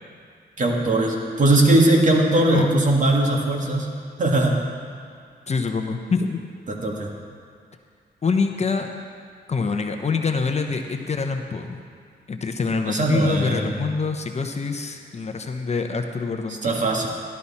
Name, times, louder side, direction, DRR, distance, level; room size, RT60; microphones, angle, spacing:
voice 1, 0.6-3.9 4.2-4.6 6.7-7.1 12.9-13.8 16.6-17.1, right 2 dB, 45° right, -1 dB, 1.9 m, -20 dB
voice 2, 5.5-6.4 8.2-8.9 9.5-11.8 12.3-16.8, left 4 dB, 35° left, 5 dB, 0.8 m, -25 dB
13.5 x 12.0 x 4.2 m, 2.2 s
cardioid pair, 110°, 19 cm